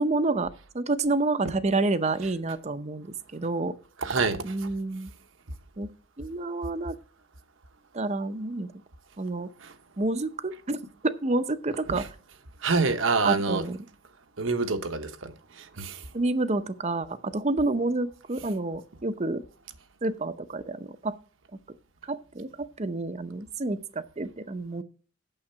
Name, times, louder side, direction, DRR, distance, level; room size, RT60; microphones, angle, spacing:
voice 1, 0.0-3.7 4.4-5.1 5.8-5.9 6.2-7.0 7.9-8.7 9.2-9.5 10.0-12.1 13.2-13.8 16.1-19.4 20.0-21.2 22.0-24.8, right 2 dB, 35° right, 0.7 m, -29 dB
voice 2, 4.0-4.4 12.6-13.6 14.4-16.0, right 4 dB, 75° right, 1.0 m, -26 dB
8.8 x 7.1 x 5.7 m
head